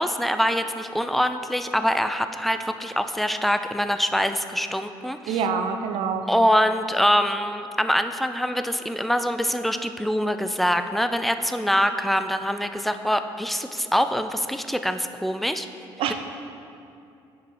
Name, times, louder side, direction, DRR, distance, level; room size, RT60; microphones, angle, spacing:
voice 1, 0.0-5.4 6.3-15.7, equal, ahead, 9 dB, 0.4 m, -24 dB
voice 2, 5.3-6.3 16.0-16.1, right 6 dB, 70° right, 7 dB, 0.6 m, -25 dB
7.6 x 5.3 x 4.6 m, 2.6 s
cardioid pair, 90°, 10 cm